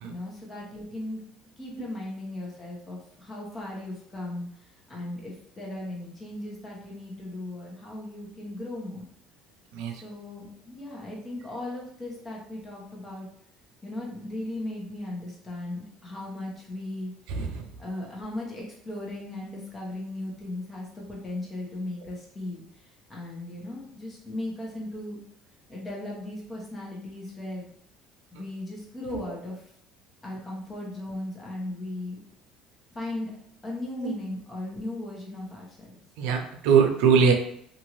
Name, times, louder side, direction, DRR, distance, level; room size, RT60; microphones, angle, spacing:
voice 1, 0.0-1.2 1.6-9.1 9.9-13.3 13.8-17.1 17.8-25.2 25.7-27.7 28.3-29.7 30.2-32.2 32.9-33.3 33.6-36.0, left 1 dB, 25° left, -2 dB, 1.0 m, -37 dB
voice 2, 36.2-37.3, right 6 dB, 80° right, 4 dB, 0.5 m, -21 dB
2.7 x 2.6 x 3.0 m, 0.69 s
cardioid pair, 115°, 0 cm